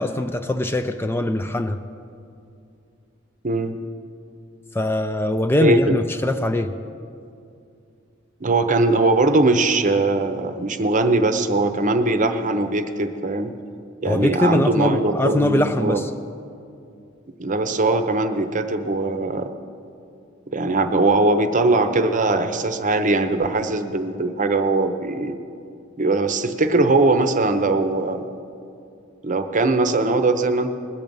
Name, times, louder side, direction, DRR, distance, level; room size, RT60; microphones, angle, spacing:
voice 1, 0.0-1.8 4.7-6.7 14.1-16.1, left 1 dB, 10° left, 8 dB, 0.3 m, -22 dB
voice 2, 3.4-3.8 5.6-5.9 8.4-13.5 14.0-16.0 17.4-19.5 20.5-25.4 26.0-28.2 29.2-30.7, right 2 dB, 40° right, 8 dB, 0.8 m, -20 dB
20.5 x 7.5 x 5.4 m, 2.5 s
head